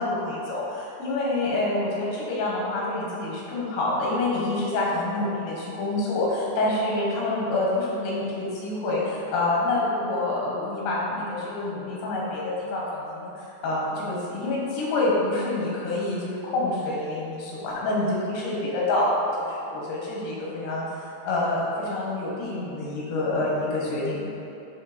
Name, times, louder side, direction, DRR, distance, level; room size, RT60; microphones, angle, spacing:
voice 1, 0.0-19.1 19.4-24.3, left 2 dB, 85° left, -5 dB, 3.7 m, -27 dB
11.0 x 3.7 x 4.4 m, 3.0 s
omnidirectional pair, 4.6 m